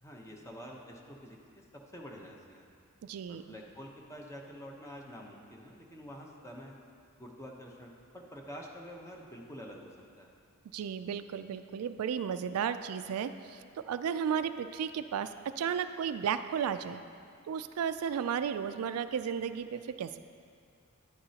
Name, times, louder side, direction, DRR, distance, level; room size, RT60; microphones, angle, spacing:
voice 1, 0.0-1.6 1.9-2.7 3.3-6.8 7.2-10.3, equal, 15° left, 0 dB, 0.8 m, -47 dB
voice 2, 3.0-3.4 10.7-17.0 17.5-20.2, right 7 dB, 75° right, 11 dB, 0.3 m, -34 dB
10.0 x 9.6 x 2.9 m, 2.3 s
head